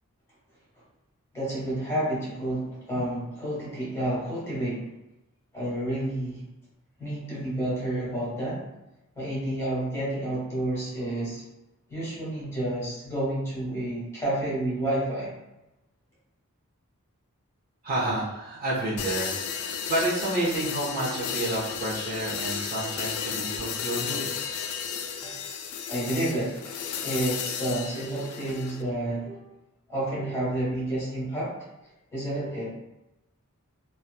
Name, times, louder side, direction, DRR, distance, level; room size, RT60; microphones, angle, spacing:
voice 1, 1.3-4.9 5.5-6.4 7.0-8.7 9.1-11.4 11.9-15.3 25.2-29.5 29.9-31.7 32.1-32.7, right 1 dB, 10° left, -8 dB, 1.2 m, -30 dB
voice 2, 17.8-24.3, right 1 dB, 40° right, -8 dB, 0.8 m, -30 dB
sound 1, 19.0-28.8, left 7 dB, 65° left, 0.3 m, -33 dB
2.8 x 2.3 x 2.2 m, 0.94 s
head